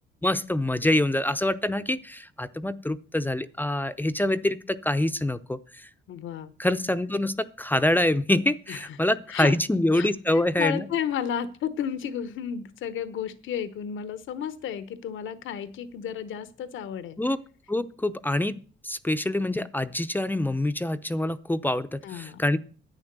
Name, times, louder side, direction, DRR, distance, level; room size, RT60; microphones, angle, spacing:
voice 1, 0.2-5.9 6.6-10.8 17.2-17.4 17.7-18.6 18.8-22.6, left 1 dB, 10° left, 12 dB, 0.6 m, -25 dB
voice 2, 6.1-6.5 8.7-9.0 9.3-9.5 9.9-17.2 22.0-22.5, left 9 dB, 80° left, 14 dB, 1.0 m, -32 dB
10.5 x 8.7 x 6.7 m, 0.40 s
cardioid pair, 90°, 20 cm